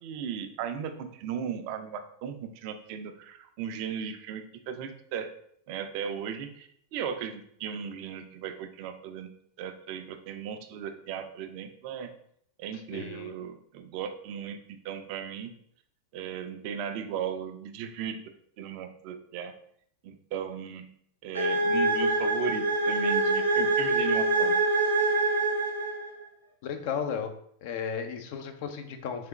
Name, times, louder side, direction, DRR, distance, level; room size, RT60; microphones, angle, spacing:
voice 1, 0.0-5.3 5.7-12.1 12.6-15.5 16.1-18.2 18.6-19.5 20.0-20.9 21.2-24.6, right 8 dB, 45° right, 8 dB, 0.4 m, -36 dB
voice 2, 12.7-13.3 26.6-27.3 27.6-29.3, left 7 dB, 50° left, 6 dB, 0.5 m, -34 dB
sound 1, 21.3-26.2, right 2 dB, 80° right, 0.7 m, -25 dB
3.6 x 3.3 x 3.0 m, 0.66 s
figure-of-eight pair, 90°, 0 cm